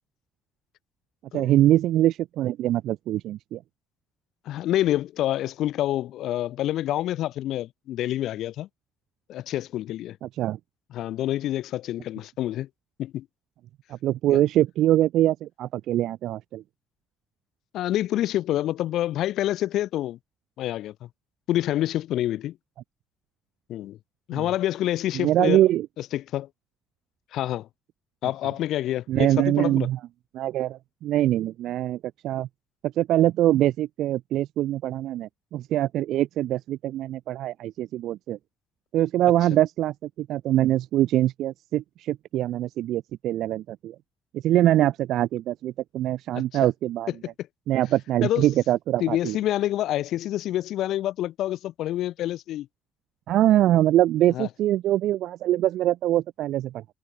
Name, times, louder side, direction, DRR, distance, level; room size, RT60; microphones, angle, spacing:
voice 1, 1.3-3.6 10.2-10.6 14.0-16.6 24.3-24.5 25.1-25.9 29.1-30.0 30.3-32.0 32.2-32.5 33.0-38.4 38.9-44.0 44.3-47.1 47.7-49.4 53.3-56.9, right 13 dB, 85° right, 0.4 m, -23 dB
voice 2, 4.5-8.7 9.3-10.2 10.9-12.7 13.0-13.2 14.3-14.4 17.7-20.2 20.6-21.1 21.5-22.6 23.7-24.0 24.3-25.6 26.0-26.5 27.3-27.7 28.2-29.9 46.3-46.4 48.2-48.5 49.0-52.7 54.3-54.5, left 13 dB, 80° left, 1.0 m, -27 dB
cardioid pair, 90°, 0 cm